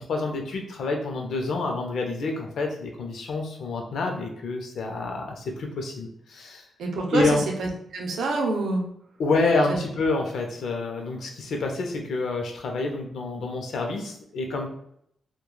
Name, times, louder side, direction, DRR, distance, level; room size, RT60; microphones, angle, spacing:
voice 1, 0.1-6.6 7.1-7.4 9.2-14.7, left 3 dB, 70° left, 2 dB, 0.5 m, -28 dB
voice 2, 6.8-7.3 7.6-8.8 9.7-9.8, right 3 dB, 80° right, 1 dB, 0.5 m, -26 dB
3.0 x 2.2 x 2.2 m, 0.72 s
wide cardioid pair, 170°, 0 cm